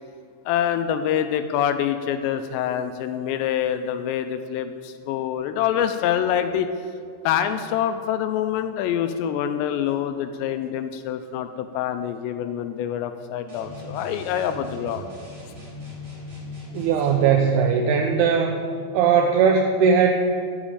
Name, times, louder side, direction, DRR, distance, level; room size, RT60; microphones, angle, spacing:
voice 1, 0.5-6.7 7.2-15.0, left 9 dB, 85° left, 9 dB, 2.7 m, -25 dB
sound 1, 13.5-17.3, left 1 dB, 20° right, 3.2 m, -39 dB
voice 2, 16.7-18.6 18.9-20.1, right 6 dB, 80° right, 3 dB, 2.3 m, -19 dB
10.5 x 7.3 x 8.6 m, 2.3 s
omnidirectional pair, 5.2 m